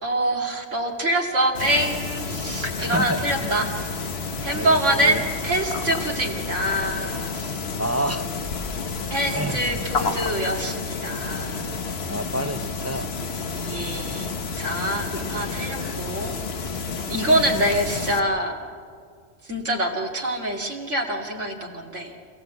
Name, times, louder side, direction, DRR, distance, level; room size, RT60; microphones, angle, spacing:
voice 1, 0.0-7.7 9.1-11.6 13.6-14.3 14.6-16.7 17.1-18.6 19.4-22.1, right 1 dB, 90° right, 0 dB, 2.8 m, -25 dB
sound 1, 1.6-18.2, left 4 dB, 60° left, 1.4 m, -30 dB
voice 2, 2.8-3.5 4.5-5.2 7.8-8.3 9.3-9.8 12.1-13.1 15.1-15.2 15.6-16.0 17.3-17.6, right 1 dB, 20° right, 10 dB, 0.4 m, -29 dB
26.0 x 17.0 x 8.2 m, 2.2 s
omnidirectional pair, 1.2 m